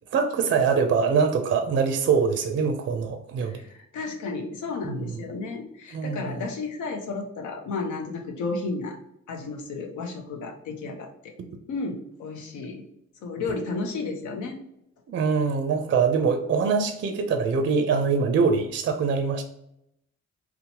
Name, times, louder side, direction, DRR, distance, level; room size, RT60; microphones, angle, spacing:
voice 1, 0.1-3.6 4.8-5.1 5.9-6.4 15.1-19.4, right 5 dB, 40° right, 6 dB, 0.4 m, -23 dB
voice 2, 3.4-9.0 9.3-11.3 11.7-12.8 13.2-14.6, left 3 dB, 80° left, 3 dB, 0.6 m, -33 dB
2.8 x 2.0 x 2.9 m, 0.80 s
cardioid pair, 90°, 30 cm